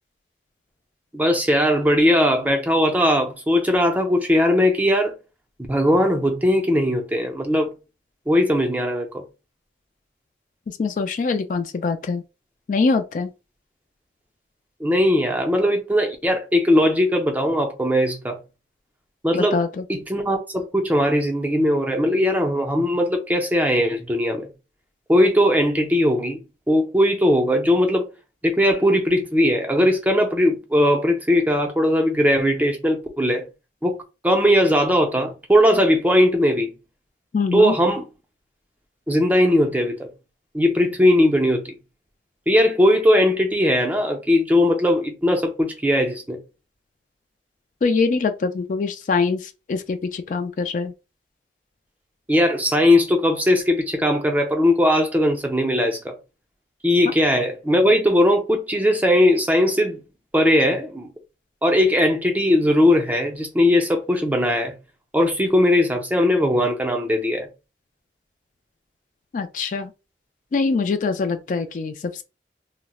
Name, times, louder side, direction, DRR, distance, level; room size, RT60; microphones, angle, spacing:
voice 1, 1.1-5.1 5.7-7.7 8.3-9.2 14.8-18.4 19.2-19.6 19.9-24.5 25.1-26.4 26.7-28.1 28.4-33.4 33.8-34.0 34.2-36.7 37.5-38.0 39.1-40.1 40.5-41.7 42.5-46.4 52.3-56.1 56.8-60.0 60.3-61.1 61.6-64.8 65.1-67.5, left 1 dB, 10° right, 0.5 m, -19 dB
voice 2, 10.7-12.2 12.7-13.3 19.3-19.8 37.3-37.7 47.8-50.9 69.3-69.9 70.5-72.2, left 4 dB, 45° left, 0.3 m, -23 dB
4.1 x 2.0 x 2.3 m
head